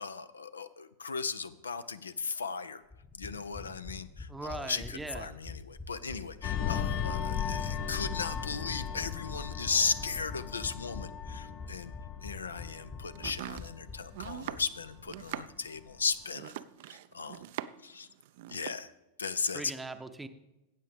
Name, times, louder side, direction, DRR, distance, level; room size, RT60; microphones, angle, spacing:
voice 1, 0.0-2.8 3.1-11.9 12.2-16.6 16.9-17.4 17.8-18.1 18.5-18.9 19.2-19.7, left 5 dB, 75° left, 15 dB, 0.4 m, -36 dB
sound 1, 2.9-14.6 14.9-15.0 15.2-15.3, left 3 dB, 15° left, 1.0 m, -45 dB
voice 2, 4.3-5.3 19.5-20.3, right 2 dB, 10° right, 9 dB, 0.7 m, -40 dB
sound 2, 6.4-15.5 15.8-16.1, left 8 dB, 40° left, 0.7 m, -37 dB
Domestic sounds home sounds, 13.1-17.9 18.2-18.8, right 13 dB, 50° right, 0.4 m, -42 dB
15.5 x 8.3 x 3.4 m, 0.98 s
figure-of-eight pair, 90°, 0 cm